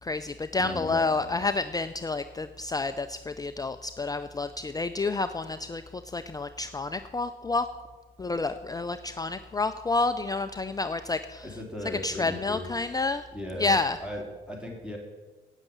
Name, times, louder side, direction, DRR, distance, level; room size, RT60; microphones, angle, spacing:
voice 1, 0.0-7.7 8.2-11.5 12.0-13.2 13.6-14.0, left 3 dB, 20° left, 9 dB, 0.5 m, -29 dB
voice 2, 0.6-1.4 11.4-12.9 13.3-15.0, left 1 dB, 5° right, -1 dB, 3.5 m, -38 dB
9.6 x 9.2 x 8.6 m, 1.2 s
cardioid pair, 90°, 20 cm